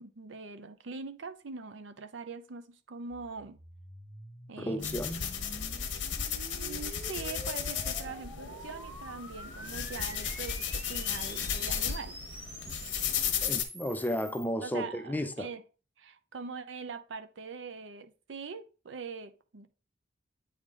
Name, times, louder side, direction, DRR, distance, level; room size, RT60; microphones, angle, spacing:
voice 1, 0.0-3.6 4.5-5.0 6.6-12.2 14.6-15.6 16.0-19.7, right 4 dB, 80° right, 0.6 m, -42 dB
sound 1, 3.1-14.5, equal, 10° right, 1.1 m, -47 dB
voice 2, 4.6-5.2 13.4-15.5, equal, 10° left, 0.5 m, -33 dB
sound 2, 4.8-13.6, left 7 dB, 80° left, 0.9 m, -34 dB
8.6 x 3.3 x 3.7 m
head